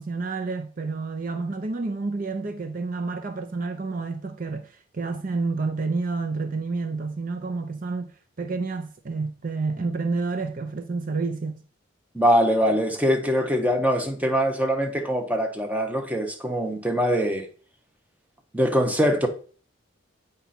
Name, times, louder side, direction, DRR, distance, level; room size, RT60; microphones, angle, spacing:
voice 1, 0.0-8.1 8.4-11.6, right 3 dB, 45° right, 0.5 m, -29 dB
voice 2, 12.1-17.5 18.5-19.3, equal, 10° right, 1.0 m, -23 dB
8.0 x 5.1 x 4.3 m
head